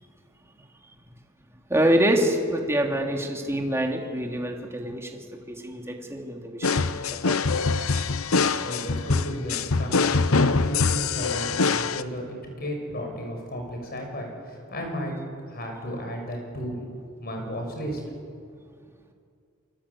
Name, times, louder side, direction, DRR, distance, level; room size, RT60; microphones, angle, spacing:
voice 1, 1.7-6.8 7.1-7.5, right 1 dB, 15° right, 2 dB, 2.8 m, -26 dB
sound 1, 6.6-12.0, left 4 dB, 85° left, 0.9 m, -24 dB
voice 2, 8.6-15.2 15.5-16.8 17.2-18.0 18.4-18.5, equal, 50° left, 3 dB, 6.7 m, -34 dB
28.0 x 24.0 x 8.6 m, 2.3 s
head